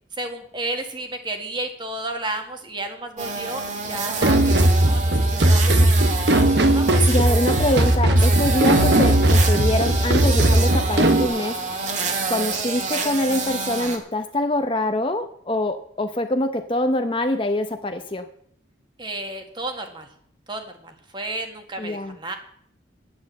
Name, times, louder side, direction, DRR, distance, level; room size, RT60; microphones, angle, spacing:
voice 1, 0.2-5.9 6.7-7.1 8.1-8.2 19.0-20.1 20.5-22.4, right 2 dB, 25° right, 5 dB, 1.7 m, -32 dB
sound 1, 3.2-14.0, right 4 dB, 40° right, 1.8 m, -28 dB
sound 2, 4.2-11.3, right 1 dB, 65° right, 1.2 m, -18 dB
voice 2, 7.1-11.6 12.3-18.2 21.8-22.2, left 1 dB, 30° left, 7 dB, 0.7 m, -24 dB
10.0 x 9.8 x 7.5 m, 0.65 s
head